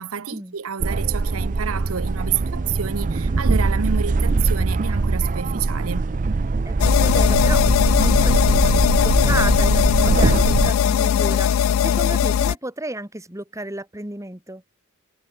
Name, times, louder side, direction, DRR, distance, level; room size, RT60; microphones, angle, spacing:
voice 1, 0.0-6.1, right 7 dB, 85° right, 0.8 m, -29 dB
sound 1, 0.8-10.7, right 3 dB, 40° right, 0.5 m, -22 dB
voice 2, 6.7-14.6, right 1 dB, 15° right, 2.3 m, -32 dB
sound 2, 6.8-12.5, left 8 dB, 70° left, 0.3 m, -19 dB
head